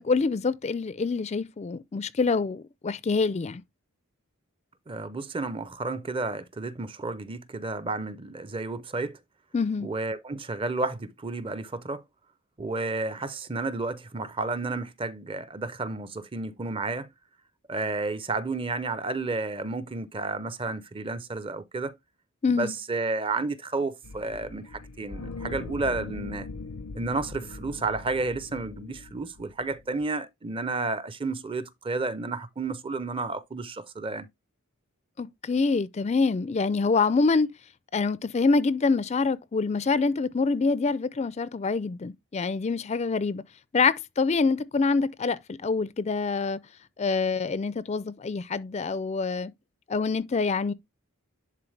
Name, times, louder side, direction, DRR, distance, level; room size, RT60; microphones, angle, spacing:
voice 1, 0.0-3.6 9.5-9.9 22.4-22.7 35.2-37.5 37.9-43.4 43.7-46.6 47.0-49.5 49.9-50.7, left 4 dB, 30° left, 0.3 m, -26 dB
voice 2, 4.9-9.2 9.8-12.0 12.6-17.1 17.7-22.0 22.5-26.5 26.9-34.3, right 3 dB, 25° right, 0.5 m, -31 dB
sound 1, 24.0-30.0, left 3 dB, 80° left, 0.6 m, -40 dB
11.0 x 3.8 x 3.3 m
head